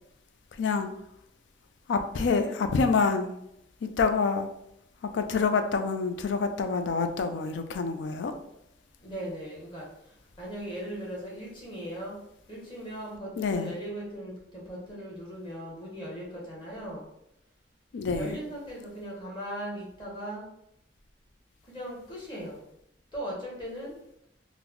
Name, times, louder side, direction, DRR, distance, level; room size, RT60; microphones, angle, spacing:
voice 1, 0.6-0.9 1.9-3.3 3.8-4.5 5.1-8.4 13.4-13.7 17.9-18.4, left 4 dB, 75° left, 7 dB, 0.4 m, -27 dB
voice 2, 9.0-12.2 12.5-17.1 18.1-20.5 21.6-22.6 23.1-23.9, right 1 dB, 25° left, -4 dB, 0.9 m, -38 dB
3.9 x 2.0 x 2.9 m, 0.80 s
head